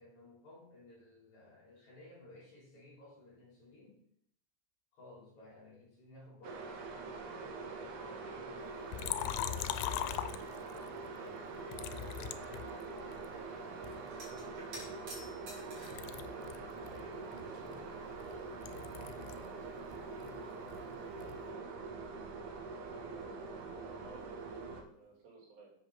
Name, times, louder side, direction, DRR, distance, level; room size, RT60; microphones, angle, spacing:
voice 1, 0.0-4.0 4.9-15.4 16.0-21.8 23.0-23.2, left 2 dB, 45° left, -6 dB, 4.6 m, -57 dB
sound 1, 6.4-24.8, right 4 dB, 85° right, 3.5 m, -44 dB
Liquid, 8.9-10.9 11.7-13.3 13.8-15.6 15.8-19.5 19.8-21.4, left 12 dB, 90° left, 2.9 m, -41 dB
sound 2, 14.1-16.1 17.0-17.8 18.1-18.2 19.5-19.6 19.9-20.9 24.5-24.7 25.0-25.2, right 1 dB, 40° right, 3.7 m, -51 dB
voice 2, 22.8-25.7, right 3 dB, 70° right, -3 dB, 4.8 m, -55 dB
11.5 x 7.9 x 3.7 m, 0.71 s
omnidirectional pair, 5.2 m